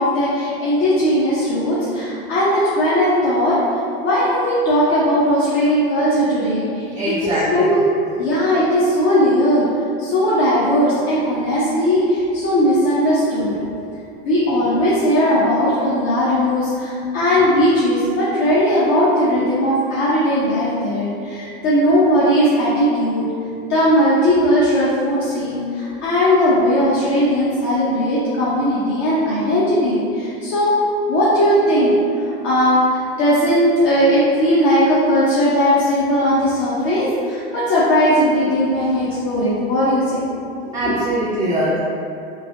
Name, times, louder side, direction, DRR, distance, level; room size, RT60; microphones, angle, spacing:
voice 1, 0.0-3.6 4.0-7.8 8.2-9.6 10.0-13.5 14.2-23.3 23.7-30.8 31.1-31.9 32.4-40.2 40.6-40.7, equal, 40° left, -9 dB, 0.7 m, -18 dB
voice 2, 6.9-7.7 40.7-41.8, right 1 dB, 10° right, -9 dB, 0.4 m, -22 dB
3.1 x 2.7 x 2.6 m, 2.5 s
hypercardioid pair, 105°, 31 cm